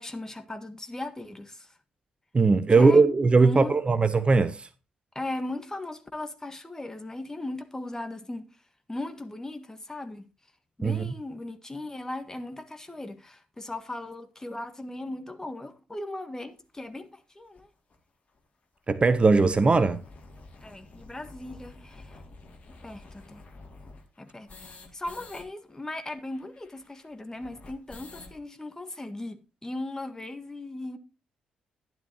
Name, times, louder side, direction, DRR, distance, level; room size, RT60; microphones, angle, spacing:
voice 1, 0.0-1.7 2.8-3.1 3.4-3.7 5.1-8.4 8.9-10.3 10.8-17.7 20.6-22.2 22.8-23.4 24.2-31.0, left 2 dB, 15° left, 1.7 m, -37 dB
voice 2, 2.3-4.7 10.8-11.1 18.9-20.0, right 4 dB, 30° right, 0.8 m, -20 dB
sound 1, 16.8-16.9 17.5-17.6 17.9-18.0 18.3-18.4 18.8-25.4 25.7-25.8 26.0-28.4, left 3 dB, 40° left, 2.4 m, -49 dB
12.0 x 10.5 x 2.9 m
figure-of-eight pair, 40°, 4 cm